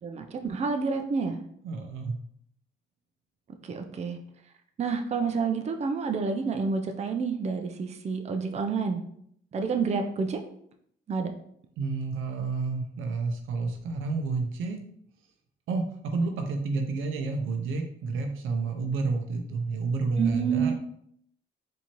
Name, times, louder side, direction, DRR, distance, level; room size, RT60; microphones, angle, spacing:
voice 1, 0.0-1.4 3.6-4.2 4.8-9.0 9.5-10.4 11.1-11.3 20.2-20.7, right 5 dB, 35° right, 5 dB, 0.5 m, -29 dB
voice 2, 1.6-2.2 11.8-14.8 15.7-20.7, right 4 dB, 85° right, 5 dB, 0.6 m, -30 dB
4.4 x 2.7 x 2.9 m, 0.68 s
cardioid pair, 90°, 20 cm